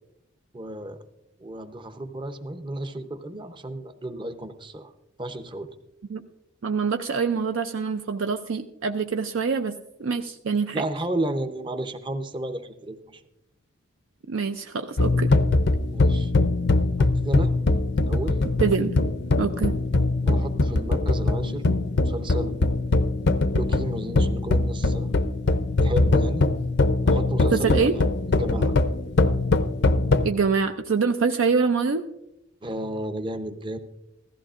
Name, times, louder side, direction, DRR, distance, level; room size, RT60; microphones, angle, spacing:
voice 1, 0.5-1.0 1.4-4.9 5.2-5.7 10.7-13.2 15.9-16.3 17.0-17.5 18.1-18.4 20.2-21.6 22.0-22.7 23.5-25.2 25.8-26.4 27.1-27.9 28.3-28.7 32.6-33.8, right 1 dB, 20° right, 9 dB, 0.7 m, -32 dB
voice 2, 6.6-9.7 10.0-10.8 14.3-15.3 18.6-18.9 19.4-19.7 27.5-27.9 30.2-32.0, right 5 dB, 65° right, 6 dB, 0.5 m, -25 dB
sound 1, 15.0-30.3, left 2 dB, 50° left, 0.5 m, -22 dB
15.5 x 14.0 x 2.5 m, 0.89 s
head